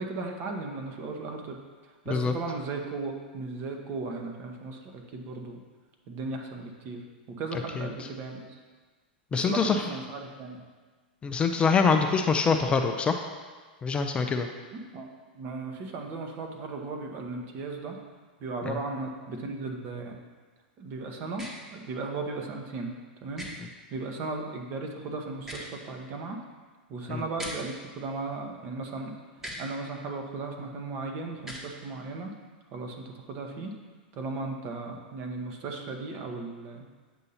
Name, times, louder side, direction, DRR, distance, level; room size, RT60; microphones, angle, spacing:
voice 1, 0.0-1.6 1.8-5.6 6.1-7.0 7.4-8.6 9.3-10.6 14.7-18.0 18.4-20.2 20.8-22.9 23.2-23.4 23.9-26.4 26.9-29.1 29.6-32.3 32.7-33.8 34.1-36.9, right 3 dB, 40° right, 3 dB, 1.0 m, -36 dB
voice 2, 9.3-9.8 11.2-13.2 13.8-14.5 18.7-18.8 27.1-27.2, left 5 dB, 20° left, 5 dB, 0.4 m, -24 dB
sound 1, 21.3-21.5 23.4-23.5 25.4-25.7 27.4-27.6 29.4-29.6 31.4-31.7, equal, 10° right, 1.1 m, -39 dB
8.0 x 2.8 x 5.5 m, 1.4 s
hypercardioid pair, 110°, 5 cm